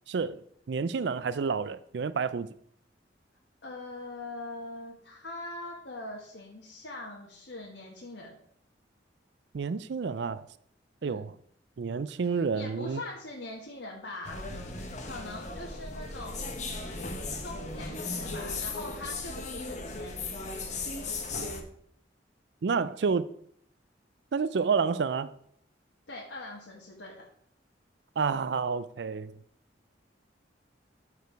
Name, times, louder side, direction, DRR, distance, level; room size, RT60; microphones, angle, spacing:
voice 1, 0.1-0.4 0.7-2.5 9.5-10.5 11.0-11.3 11.8-13.0 22.6-23.3 24.3-25.4 28.2-29.4, right 5 dB, 70° right, 0.4 m, -29 dB
voice 2, 3.6-8.4 11.0-11.3 12.2-16.9 17.4-20.2 26.1-27.3, left 2 dB, 85° left, 1.7 m, -42 dB
sound 1, 14.2-21.6, left 3 dB, 40° left, 1.2 m, -37 dB
13.0 x 4.8 x 4.6 m
head